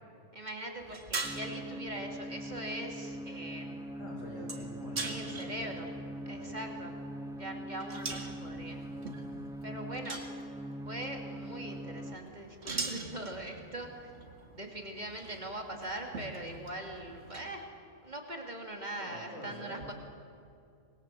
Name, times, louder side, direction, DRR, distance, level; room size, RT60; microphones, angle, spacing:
voice 1, 0.3-3.7 5.0-5.9 6.3-7.0 7.3-8.8 9.6-10.2 10.9-14.1 14.5-17.7 18.0-19.9, right 1 dB, 35° right, 2 dB, 2.9 m, -41 dB
sound 1, 0.8-17.6, right 3 dB, 55° right, 2.4 m, -44 dB
sound 2, 1.2-12.2, right 1 dB, 5° right, 0.5 m, -42 dB
voice 2, 3.9-5.9 6.3-6.6 18.9-19.9, equal, 80° left, 0 dB, 5.7 m, -47 dB
25.5 x 21.5 x 7.8 m, 2.4 s
omnidirectional pair, 1.3 m